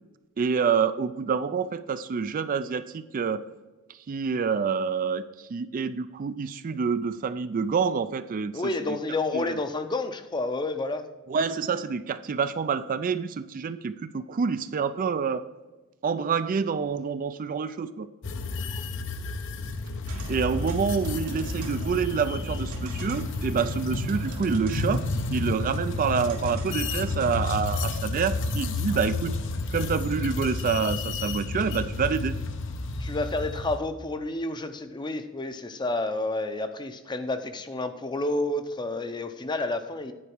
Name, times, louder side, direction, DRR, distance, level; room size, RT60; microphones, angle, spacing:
voice 1, 0.4-3.4 4.1-8.7 9.3-9.4 11.3-15.5 16.0-18.1 20.3-29.4 29.7-32.3, right 6 dB, 40° right, 12 dB, 0.3 m, -27 dB
voice 2, 8.5-11.0 33.0-40.1, left 2 dB, 20° left, 9 dB, 0.6 m, -30 dB
sound 1, 18.2-33.8, left 3 dB, 60° left, 0.7 m, -31 dB
sound 2, 20.0-27.4, right 2 dB, 80° right, 1.6 m, -41 dB
10.0 x 4.7 x 6.0 m, 1.2 s
head